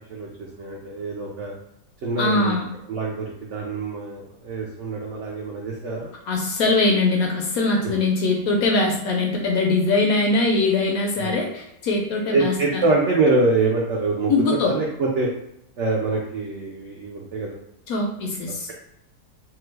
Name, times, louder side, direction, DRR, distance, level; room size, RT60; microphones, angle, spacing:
voice 1, 0.1-1.5 2.0-2.6 2.9-6.1 11.2-11.4 12.3-14.3 14.6-15.3 15.8-17.6, right 3 dB, 75° right, -2 dB, 0.6 m, -25 dB
voice 2, 2.2-2.7 6.3-12.8 14.3-14.7 17.9-18.7, left 3 dB, 70° left, 0 dB, 0.9 m, -22 dB
2.9 x 2.2 x 3.2 m, 0.77 s
omnidirectional pair, 1.8 m